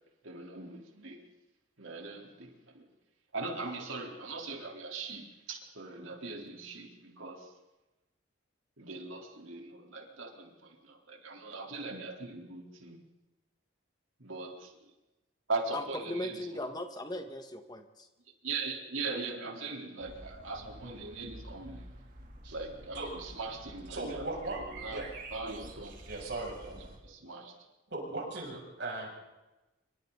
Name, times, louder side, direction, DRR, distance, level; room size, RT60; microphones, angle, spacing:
voice 1, 0.2-1.2 1.8-2.8 3.3-7.5 8.8-13.0 14.2-14.7 15.5-16.5 18.4-21.9 22.5-24.3 24.6-25.0 25.3-25.9 27.0-27.5, right 3 dB, 90° right, 1 dB, 4.1 m, -40 dB
voice 2, 15.7-18.1, left 1 dB, 20° left, 6 dB, 1.8 m, -38 dB
sound 1, 20.0-27.0, right 2 dB, 45° right, 3.2 m, -49 dB
voice 3, 23.9-24.6 24.9-25.1 26.1-26.8 27.9-29.2, right 2 dB, 60° right, -1 dB, 7.7 m, -38 dB
27.0 x 24.5 x 4.1 m, 1.0 s
head